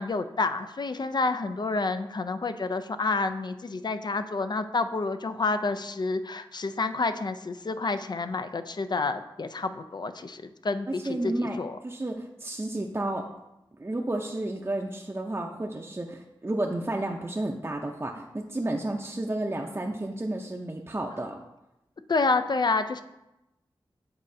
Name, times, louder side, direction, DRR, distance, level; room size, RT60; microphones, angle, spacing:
voice 1, 0.0-11.8 22.1-23.0, left 3 dB, 50° left, 10 dB, 0.4 m, -29 dB
voice 2, 10.9-11.6 11.8-13.3 13.8-21.3, right 1 dB, 25° right, 1 dB, 0.6 m, -31 dB
8.6 x 4.1 x 2.7 m, 0.91 s
cardioid pair, 40°, 9 cm